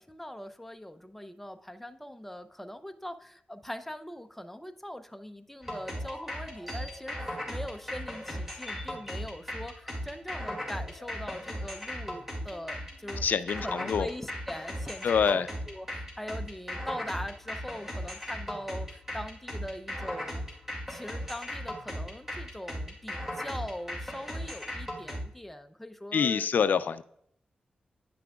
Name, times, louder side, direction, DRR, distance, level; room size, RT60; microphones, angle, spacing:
voice 1, 0.0-13.3 13.6-20.4 20.9-26.5, left 1 dB, 5° left, 8 dB, 0.6 m, -42 dB
sound 1, 5.6-25.2, equal, 10° right, 2.2 m, -37 dB
voice 2, 13.2-14.1 15.0-15.5 26.1-27.0, left 7 dB, 75° left, 13 dB, 0.3 m, -26 dB
9.9 x 5.9 x 2.3 m, 0.69 s
cardioid pair, 65°, 3 cm